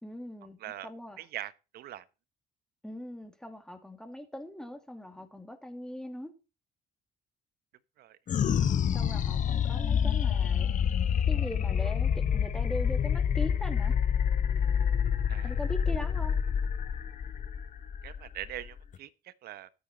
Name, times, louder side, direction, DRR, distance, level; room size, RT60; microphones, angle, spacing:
voice 1, 0.0-0.6 0.8-1.2 2.8-6.3 8.9-10.7 11.3-13.9 15.4-16.3, left 1 dB, 5° left, 2.7 m, -40 dB
voice 2, 0.6-0.9 1.2-2.0 8.0-8.2 15.3-15.5 18.0-19.7, right 13 dB, 65° right, 1.0 m, -42 dB
sound 1, 8.3-19.0, left 8 dB, 50° left, 1.2 m, -27 dB
13.0 x 9.4 x 4.3 m
cardioid pair, 110°, 17 cm